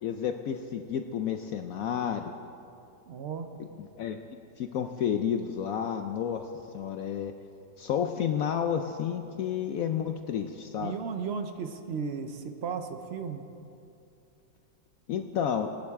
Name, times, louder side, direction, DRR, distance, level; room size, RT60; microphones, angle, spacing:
voice 1, 0.0-2.3 3.8-4.2 4.6-7.3 7.8-10.9 15.1-15.7, left 8 dB, 70° left, 6 dB, 0.8 m, -31 dB
voice 2, 3.1-3.5 10.8-13.4, right 6 dB, 60° right, 7 dB, 0.6 m, -35 dB
20.5 x 10.5 x 3.6 m, 2.6 s
omnidirectional pair, 1.9 m